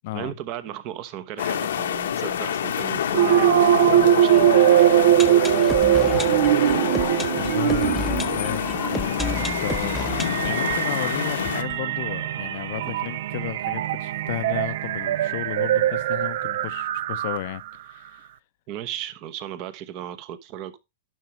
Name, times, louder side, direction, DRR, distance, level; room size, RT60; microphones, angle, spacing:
voice 1, 0.1-3.7 3.9-4.9 18.7-20.8, right 11 dB, 40° right, 0.9 m, -36 dB
sound 1, 1.4-11.6, left 9 dB, 80° left, 0.9 m, -27 dB
sound 2, 3.1-17.7, right 12 dB, 65° right, 0.4 m, -22 dB
sound 3, 4.7-12.5 12.7-12.8 13.0-13.1 13.7-13.8, left 1 dB, ahead, 0.7 m, -33 dB
voice 2, 6.0-6.4 6.7-10.1 10.4-18.3, left 16 dB, 50° left, 0.5 m, -34 dB
11.0 x 5.9 x 3.1 m
hypercardioid pair, 150°, 0 cm